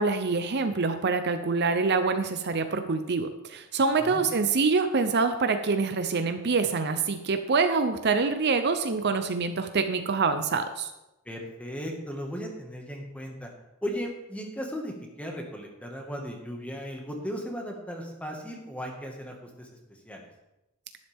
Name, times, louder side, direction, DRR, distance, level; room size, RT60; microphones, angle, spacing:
voice 1, 0.0-10.9, right 4 dB, 50° right, 8 dB, 0.7 m, -25 dB
voice 2, 11.2-13.5 13.8-20.3, equal, 5° left, 1 dB, 1.7 m, -36 dB
11.5 x 10.5 x 3.6 m, 0.94 s
head